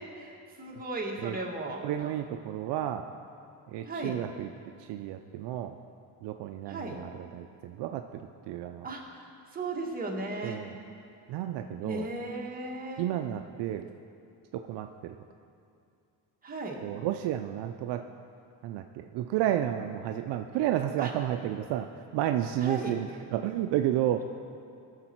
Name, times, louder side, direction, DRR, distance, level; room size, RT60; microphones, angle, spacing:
voice 1, 0.1-2.1 3.9-4.2 6.7-7.0 8.8-9.3 9.5-10.6 11.8-13.0 16.4-16.8 21.0-21.1 22.6-23.0, right 2 dB, 20° right, -2 dB, 1.9 m, -36 dB
voice 2, 1.8-3.0 3.7-4.5 4.8-5.7 6.2-8.2 8.5-8.9 10.4-10.8 11.3-12.1 13.0-13.9 14.5-15.2 16.8-18.0 18.6-21.9 22.1-24.2, right 12 dB, 70° right, 7 dB, 0.6 m, -31 dB
16.0 x 6.7 x 4.5 m, 2.5 s
cardioid pair, 100°, 44 cm